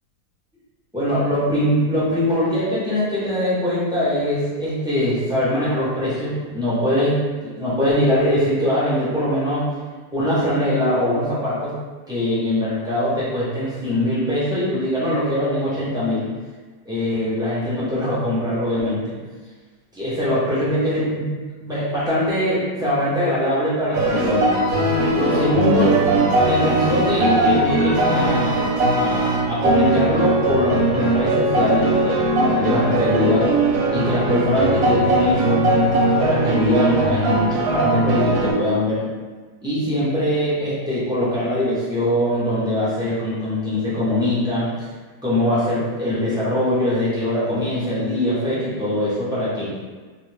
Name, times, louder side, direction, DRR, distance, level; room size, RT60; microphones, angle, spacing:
voice 1, 0.9-7.2 7.4-9.6 10.1-11.7 12.1-16.3 16.8-19.1 19.9-21.2 21.6-25.9 26.5-33.5 33.9-35.7 36.2-39.0 39.6-44.9 45.2-49.7, left 1 dB, 5° right, -10 dB, 0.4 m, -22 dB
sound 1, 23.9-38.5, right 2 dB, 70° right, 1.0 m, -19 dB
2.6 x 2.4 x 3.2 m, 1.4 s
omnidirectional pair, 1.8 m